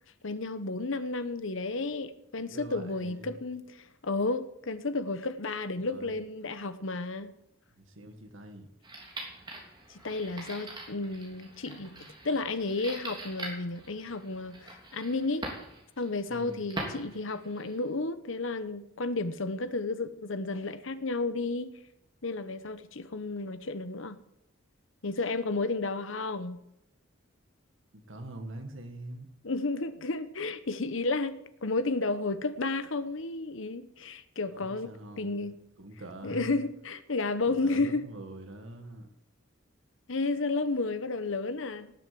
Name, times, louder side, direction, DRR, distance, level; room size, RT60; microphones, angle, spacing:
voice 1, 0.2-7.3 10.0-15.4 16.0-21.8 22.2-24.2 25.0-26.6 29.4-34.9 35.2-35.5 36.2-38.0 40.1-41.9, left 3 dB, 75° left, 1.0 m, -32 dB
voice 2, 2.4-3.3 5.8-6.1 7.7-8.7 16.3-16.6 27.9-29.3 34.5-36.6 37.4-39.1, right 1 dB, 75° right, 1.6 m, -44 dB
sound 1, 8.8-17.9, right 2 dB, 20° right, 3.4 m, -43 dB
18.0 x 8.1 x 7.7 m
head